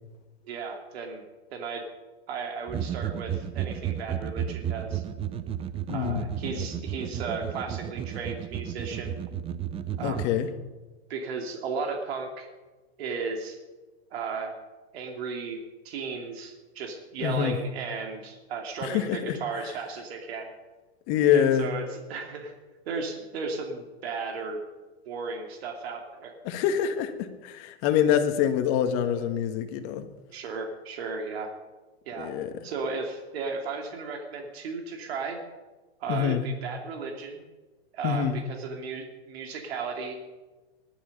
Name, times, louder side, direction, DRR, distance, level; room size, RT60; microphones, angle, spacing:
voice 1, 0.4-1.2 1.5-1.9 2.3-5.0 5.9-9.2 10.0-10.3 11.1-12.5 13.0-13.6 14.1-14.5 14.9-15.6 15.8-20.5 21.3-22.5 22.9-24.6 25.1-26.3 30.3-31.5 32.1-32.3 32.6-35.4 36.0-37.4 37.9-40.2, right 4 dB, 65° right, 3 dB, 2.8 m, -35 dB
sound 1, 2.7-10.3, right 9 dB, 15° right, 0.6 m, -33 dB
voice 2, 5.9-6.3 10.0-10.5 17.2-17.6 18.8-19.7 21.1-21.8 26.4-30.1 32.2-32.5 36.1-36.4 38.0-38.4, left 9 dB, 40° left, 7 dB, 1.8 m, -25 dB
19.5 x 11.5 x 5.4 m, 1.2 s
hypercardioid pair, 130°, 33 cm